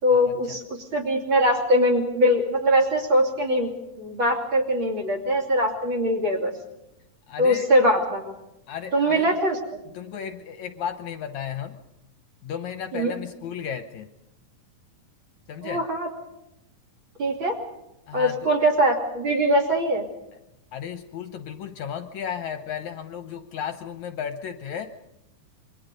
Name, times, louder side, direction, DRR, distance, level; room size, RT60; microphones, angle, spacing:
voice 1, 0.0-3.7 4.0-6.5 7.4-8.3 8.9-9.6 12.9-13.1 15.6-16.1 17.2-17.6 18.1-20.0, equal, 40° right, 4 dB, 3.2 m, -22 dB
voice 2, 7.3-7.7 8.7-9.3 9.9-11.8 12.4-14.1 15.5-15.8 18.1-18.3 20.7-24.9, left 8 dB, 70° left, 8 dB, 2.2 m, -34 dB
27.0 x 22.5 x 5.3 m, 0.86 s
omnidirectional pair, 3.9 m